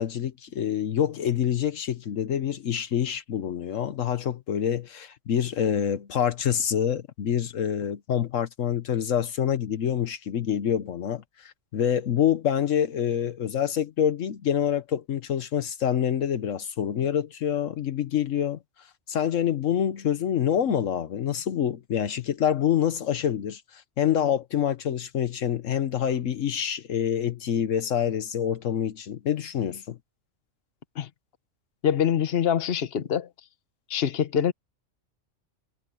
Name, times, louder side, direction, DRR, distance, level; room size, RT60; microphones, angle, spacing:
voice 1, 0.0-18.6 19.1-30.0, left 9 dB, 75° left, 1.3 m, -26 dB
voice 2, 31.8-33.3 33.9-34.5, left 9 dB, 50° left, 1.2 m, -24 dB
omnidirectional pair, 1.3 m